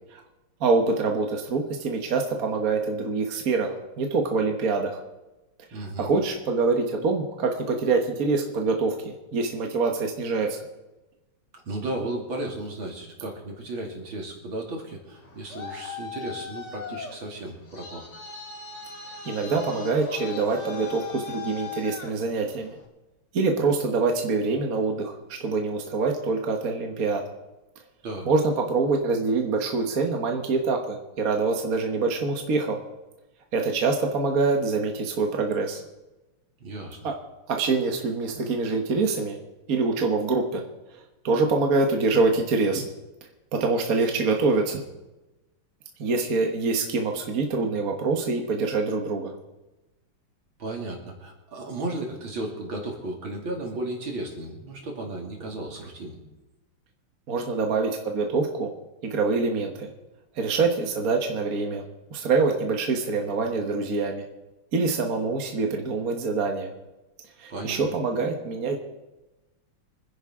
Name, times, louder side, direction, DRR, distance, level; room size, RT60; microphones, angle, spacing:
voice 1, 0.6-5.0 5.7-10.6 19.2-22.8 23.3-27.2 28.2-32.8 33.5-35.8 37.0-37.1 37.5-39.4 39.7-40.6 41.2-42.8 43.5-44.8 46.0-49.3 57.3-58.7 59.0-59.9 60.3-61.8 62.1-64.2 64.7-66.7 67.4-68.7, right 4 dB, 45° right, 2 dB, 1.6 m, -25 dB
voice 2, 5.7-6.1 11.5-18.0 28.0-28.3 36.6-37.0 50.6-56.2 67.5-67.8, right 2 dB, 65° right, 0 dB, 3.3 m, -34 dB
Traffic noise roadway noise, 15.1-22.9, left 6 dB, 35° left, 1.9 m, -39 dB
25.5 x 10.5 x 3.7 m, 1.1 s
omnidirectional pair, 2.4 m